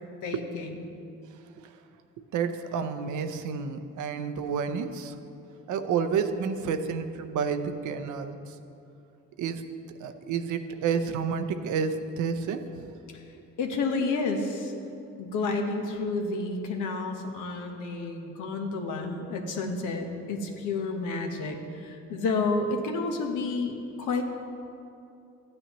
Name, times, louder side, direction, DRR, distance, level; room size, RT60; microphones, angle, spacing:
voice 1, 0.2-0.9 13.1-13.2 13.6-14.7 15.2-24.2, left 3 dB, 85° left, 3 dB, 1.1 m, -30 dB
voice 2, 2.3-5.2 5.7-8.5 9.4-9.6 10.0-12.9, right 6 dB, 75° right, 9 dB, 0.7 m, -30 dB
13.5 x 9.6 x 3.0 m, 2.6 s
cardioid pair, 90°, 30 cm